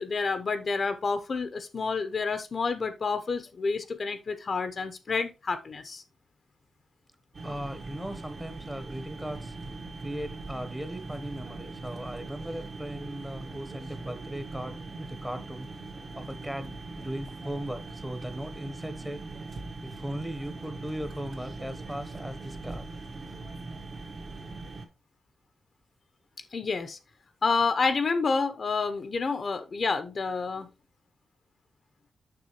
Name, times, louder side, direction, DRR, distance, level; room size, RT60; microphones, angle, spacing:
voice 1, 0.0-6.0 26.5-27.0 27.4-30.7, left 4 dB, 50° left, 0.8 m, -29 dB
sound 1, 7.3-24.9, right 3 dB, 50° right, 1.8 m, -41 dB
voice 2, 7.4-9.5 10.0-15.7 16.1-19.2 19.8-22.9, equal, 5° right, 1.1 m, -38 dB
6.8 x 6.1 x 3.1 m
cardioid pair, 90°, 0 cm